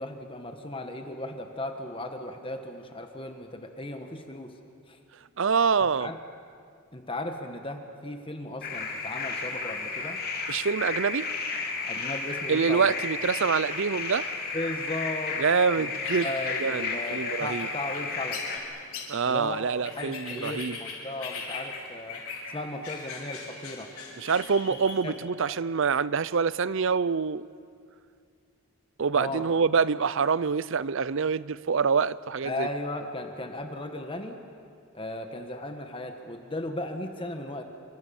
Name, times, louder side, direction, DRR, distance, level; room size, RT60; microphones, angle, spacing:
voice 1, 0.0-4.5 4.9-5.0 6.0-6.2 6.9-10.2 11.9-12.9 14.5-15.4 15.7-15.9 16.2-18.4 19.3-19.7 20.0-22.2 22.5-23.9 24.7-24.8 25.0-25.6 29.1-29.5 32.4-34.4 34.9-37.6, left 1 dB, 25° left, 5 dB, 1.5 m, -36 dB
voice 2, 5.4-6.1 10.5-11.3 12.5-14.3 15.4-16.3 16.6-17.7 19.1-20.8 24.2-27.5 29.0-32.7, right 5 dB, 60° right, 18 dB, 0.5 m, -26 dB
sound 1, 8.6-18.6, left 4 dB, 45° left, 3.5 m, -33 dB
sound 2, 16.0-25.0, left 4 dB, 75° left, 5.5 m, -41 dB
28.0 x 25.0 x 7.2 m, 2.3 s
head